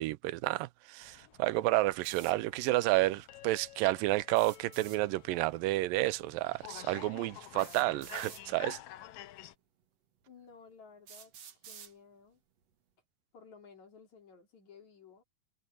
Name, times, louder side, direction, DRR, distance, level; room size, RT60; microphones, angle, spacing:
voice 1, 0.0-8.8, right 19 dB, 85° right, 2.2 m, -30 dB
sound 1, 1.0-9.5, left 14 dB, 90° left, 2.6 m, -50 dB
sound 2, 2.0-2.4 4.3-5.0 6.4-6.5 7.6-8.4 9.4-9.5 10.2-10.3 11.1-11.9, right 8 dB, 55° right, 2.6 m, -50 dB
voice 2, 10.3-12.4 13.3-15.2, left 5 dB, 55° left, 4.9 m, -56 dB
omnidirectional pair, 4.0 m